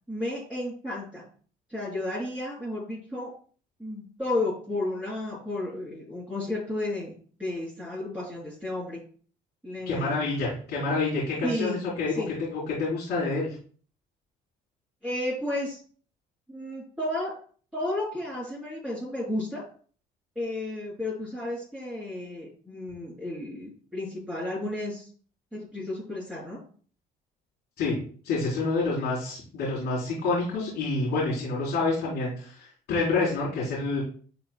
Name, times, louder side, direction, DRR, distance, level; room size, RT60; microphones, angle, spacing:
voice 1, 0.1-1.2 1.7-3.3 3.8-7.1 7.4-9.0 9.6-10.3 11.4-11.8 12.1-12.3 15.0-15.8 16.5-17.3 17.7-19.6 20.4-25.1 25.5-26.6, left 1 dB, 5° right, -8 dB, 3.9 m, -32 dB
voice 2, 9.9-12.1 12.5-13.5 27.8-28.0 28.2-34.0, left 3 dB, 80° left, -8 dB, 3.9 m, -28 dB
11.5 x 5.2 x 2.3 m, 0.43 s
cardioid pair, 110°, 17 cm